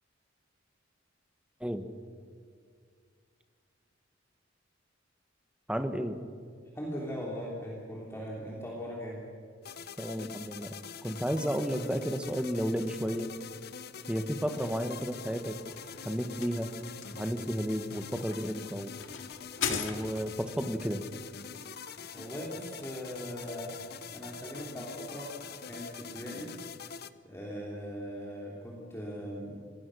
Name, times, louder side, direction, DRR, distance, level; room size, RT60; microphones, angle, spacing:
voice 1, 5.7-6.2 10.0-10.7 11.0-13.3 14.1-15.6 16.0-16.7 17.1-18.9 19.7-21.0, equal, 5° right, 8 dB, 1.3 m, -32 dB
voice 2, 6.7-9.2 22.1-23.9 24.1-25.3 25.6-26.5 27.2-29.7, equal, 15° left, -3 dB, 3.1 m, -39 dB
sound 1, 9.6-27.1, left 6 dB, 55° left, 0.9 m, -45 dB
sound 2, 15.4-20.5, left 6 dB, 90° left, 2.1 m, -39 dB
25.5 x 20.5 x 6.4 m, 2.1 s
head